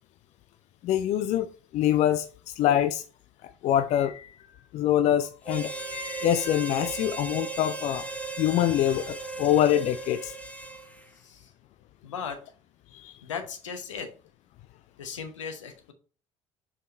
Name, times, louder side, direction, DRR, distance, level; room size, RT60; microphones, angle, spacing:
voice 1, 0.8-1.5 1.7-2.3 2.6-3.0 3.6-4.3 4.7-8.1 8.4-10.3 12.9-13.1, left 11 dB, 45° left, 0.4 m, -25 dB
Harmonica, 5.4-11.1, right 3 dB, 10° left, 1.0 m, -37 dB
voice 2, 12.0-12.4 13.2-14.1 15.0-15.9, left 6 dB, 75° left, 0.9 m, -37 dB
5.1 x 4.8 x 4.0 m
figure-of-eight pair, 55°, 16 cm